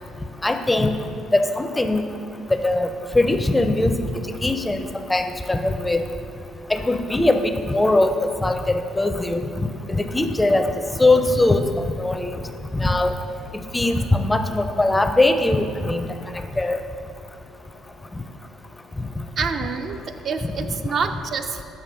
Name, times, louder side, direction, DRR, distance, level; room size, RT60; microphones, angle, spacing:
voice 1, 0.4-1.0 1.3-2.0 2.6-4.0 4.4-6.0 6.7-9.4 9.9-10.7 11.0-11.7 12.0-12.3 12.7-13.1 13.7-16.1 16.6-16.8, left 2 dB, 15° left, 8 dB, 0.4 m, -20 dB
voice 2, 19.4-21.6, right 5 dB, 50° right, 7 dB, 0.4 m, -27 dB
7.0 x 5.4 x 4.7 m, 2.5 s
cardioid pair, 90°, 0 cm